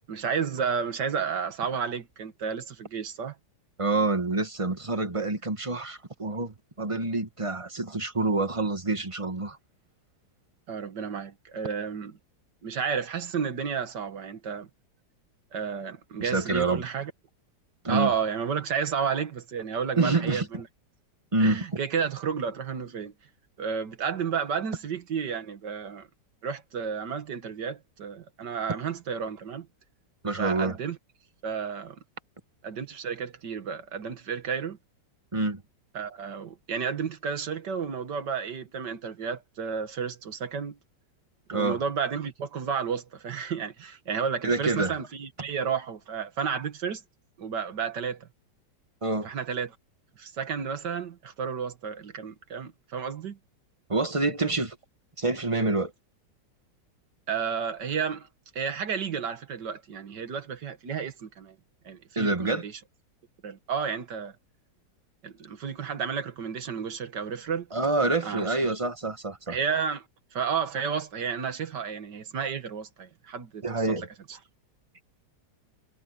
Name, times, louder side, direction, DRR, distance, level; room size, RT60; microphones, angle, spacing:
voice 1, 0.1-3.3 10.7-12.1 12.6-14.7 15.5-17.1 17.9-20.6 21.4-23.1 23.6-26.1 26.4-29.7 30.4-31.0 31.4-32.0 32.6-34.8 35.9-40.8 41.5-47.0 47.4-48.3 49.2-49.8 50.2-53.4 57.3-58.3 58.6-61.6 61.9-62.8 63.4-64.3 65.2-67.7 68.2-68.5 69.5-70.0 70.3-73.6, right 6 dB, 70° right, 2.1 m, -32 dB
voice 2, 3.8-9.6 16.2-16.9 17.8-18.1 20.0-20.5 21.3-21.6 30.2-30.8 35.3-35.6 41.5-41.8 44.4-45.0 49.0-49.3 53.9-54.8 55.2-55.9 62.1-62.7 67.7-69.6 73.6-74.1, right 3 dB, 20° right, 1.4 m, -27 dB
omnidirectional pair, 1.9 m